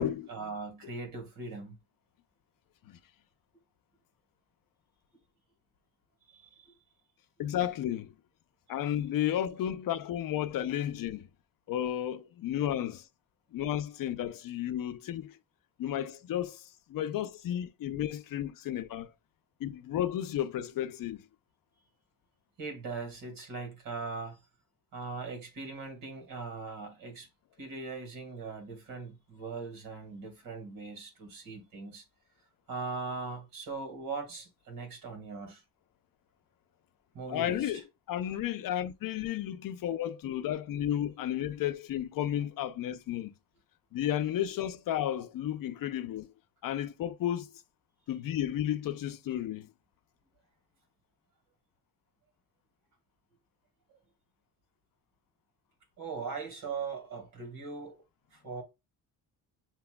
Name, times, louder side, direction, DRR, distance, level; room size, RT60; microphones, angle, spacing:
voice 1, 0.0-1.8 6.3-6.7 22.6-24.4 24.9-27.3 27.6-32.0 32.7-35.6 37.1-37.8 56.0-58.0 58.3-58.6, right 4 dB, 65° right, 2.2 m, -40 dB
voice 2, 7.4-8.1 8.7-11.3 11.7-13.1 13.5-15.4 15.8-19.1 19.6-21.2 37.3-37.8 38.1-43.3 43.9-46.3 46.6-47.6 48.1-49.7, left 11 dB, 65° left, 0.6 m, -33 dB
6.9 x 3.0 x 2.2 m
cardioid pair, 155°, 37 cm